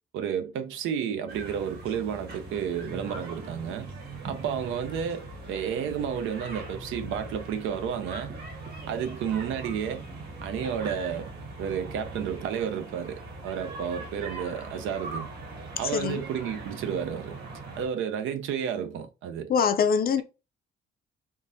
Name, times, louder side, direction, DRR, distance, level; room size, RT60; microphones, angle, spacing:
voice 1, 0.1-3.9 4.2-8.4 8.9-10.1 10.4-11.3 11.6-15.3 15.8-17.4 17.8-19.5, right 8 dB, 85° right, 0.5 m, -31 dB
sound 1, 1.3-17.9, right 2 dB, 50° right, 1.4 m, -40 dB
voice 2, 15.9-16.2 19.5-20.2, left 6 dB, 50° left, 0.5 m, -23 dB
3.7 x 2.6 x 2.6 m
cardioid pair, 90°, 20 cm